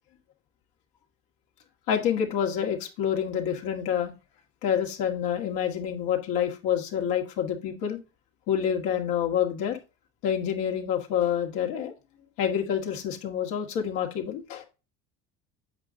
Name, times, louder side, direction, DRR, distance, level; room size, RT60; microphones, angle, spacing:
voice 1, 1.9-4.1 4.6-8.0 8.5-9.8 10.2-11.9 12.4-14.6, left 9 dB, 75° left, 1 dB, 2.0 m, -27 dB
8.0 x 5.2 x 2.7 m, 0.29 s
supercardioid pair, 100°, 36 cm